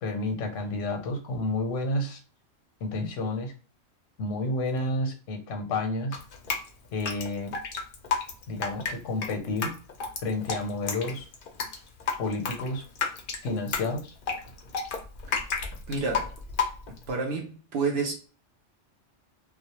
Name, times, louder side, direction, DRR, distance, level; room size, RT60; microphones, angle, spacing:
voice 1, 0.0-2.2 2.8-3.5 4.2-6.2 6.9-7.6 8.5-9.7 10.2-11.3 12.2-12.8 13.4-14.1, left 2 dB, 85° left, 1.0 m, -30 dB
Drip, 6.1-17.1, left 5 dB, 60° left, 0.6 m, -32 dB
voice 2, 15.9-16.3 17.1-18.1, right 4 dB, 65° right, 0.8 m, -29 dB
2.3 x 2.0 x 2.8 m
omnidirectional pair, 1.3 m